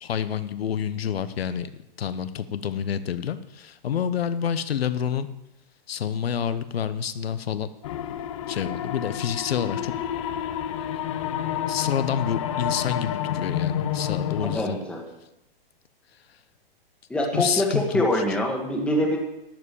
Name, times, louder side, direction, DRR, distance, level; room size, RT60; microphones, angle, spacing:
voice 1, 0.0-1.7 2.0-5.3 5.9-7.7 8.5-9.9 10.7-10.9 11.7-14.8 17.3-18.0, left 8 dB, 85° left, 13 dB, 1.0 m, -28 dB
sound 1, 7.8-14.6, left 10 dB, 35° left, 0.6 m, -29 dB
voice 2, 14.4-15.1 17.1-19.2, left 1 dB, 5° left, 1 dB, 1.6 m, -24 dB
12.0 x 7.7 x 8.3 m, 0.91 s
hypercardioid pair, 160°, 30 cm